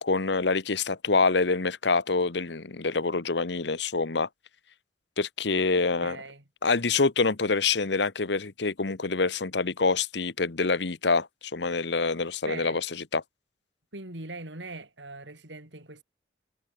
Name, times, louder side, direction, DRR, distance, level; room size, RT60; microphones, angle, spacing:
voice 1, 0.0-4.3 5.2-6.2 6.6-11.3 11.5-12.9 13.1-13.2, left 4 dB, 70° left, 1.1 m, -26 dB
voice 2, 5.7-6.4 12.4-12.8 13.9-16.0, right 2 dB, 80° right, 4.5 m, -41 dB
head